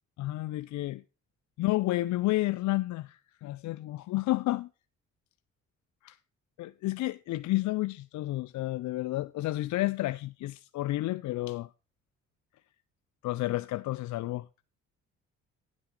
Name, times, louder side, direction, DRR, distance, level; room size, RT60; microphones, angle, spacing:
voice 1, 0.2-1.0 1.6-4.7 6.0-6.2 6.6-11.7 13.2-14.5, left 17 dB, 70° left, 0.4 m, -31 dB
9.9 x 8.8 x 3.7 m
cardioid pair, 90°, 30 cm